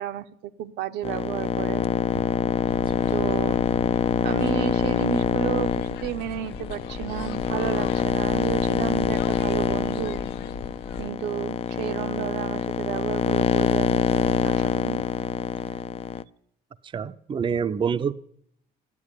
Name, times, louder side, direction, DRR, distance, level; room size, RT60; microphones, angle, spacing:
voice 1, 0.0-1.8 3.1-3.6 4.2-5.7 6.0-10.2 11.0-15.0, right 11 dB, 80° right, 10 dB, 0.9 m, -32 dB
sound 1, 1.0-16.2, left 7 dB, 35° left, 0.6 m, -25 dB
sound 2, 2.6-11.1, left 6 dB, 85° left, 1.1 m, -39 dB
voice 2, 2.9-3.2 16.8-18.1, right 7 dB, 30° right, 13 dB, 0.6 m, -27 dB
13.5 x 9.8 x 9.6 m, 0.72 s
cardioid pair, 110°, 17 cm